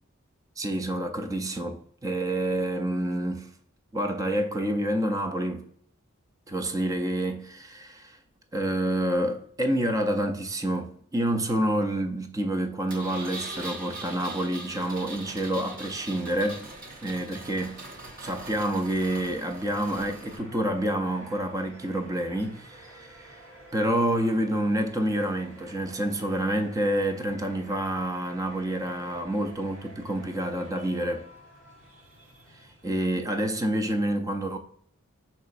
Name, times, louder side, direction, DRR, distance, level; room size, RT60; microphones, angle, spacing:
voice 1, 0.6-3.5 3.9-5.6 6.5-8.2 8.5-16.7 17.0-17.8 18.2-23.4 23.7-31.3 32.8-34.6, right 1 dB, 15° right, 0.4 m, -28 dB
Engine, 12.9-20.4, right 2 dB, 40° right, 0.9 m, -41 dB
sound 1, 14.7-33.1, right 1 dB, 75° right, 1.4 m, -51 dB
5.5 x 3.9 x 2.4 m
head